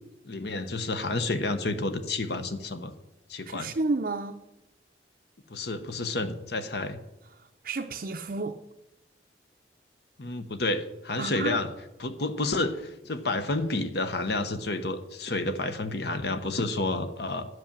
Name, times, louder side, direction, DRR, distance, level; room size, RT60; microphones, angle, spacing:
voice 1, 0.2-2.9 3.3-3.7 5.5-7.0 10.2-11.7 12.0-17.5, left 2 dB, 60° left, 10 dB, 0.9 m, -30 dB
voice 2, 3.5-4.4 7.6-8.6 11.2-11.6, right 3 dB, 50° right, 3 dB, 0.6 m, -31 dB
11.0 x 7.9 x 7.3 m, 0.95 s
head